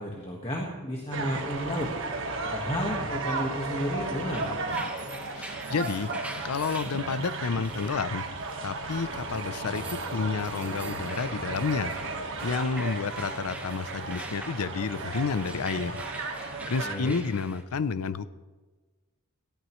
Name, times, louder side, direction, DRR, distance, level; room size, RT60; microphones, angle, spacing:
voice 1, 0.0-1.9 2.4-4.5 16.8-17.2, equal, 25° left, -1 dB, 1.6 m, -32 dB
sound 1, 1.1-17.0, right 3 dB, 60° right, 1.5 m, -35 dB
sound 2, 4.2-17.6, right 2 dB, 5° right, 1.0 m, -44 dB
voice 2, 5.3-6.1 6.4-8.2 8.6-11.9 12.4-16.0 16.4-18.3, left 5 dB, 85° left, 15 dB, 0.5 m, -30 dB
18.5 x 14.5 x 3.2 m, 1.3 s
head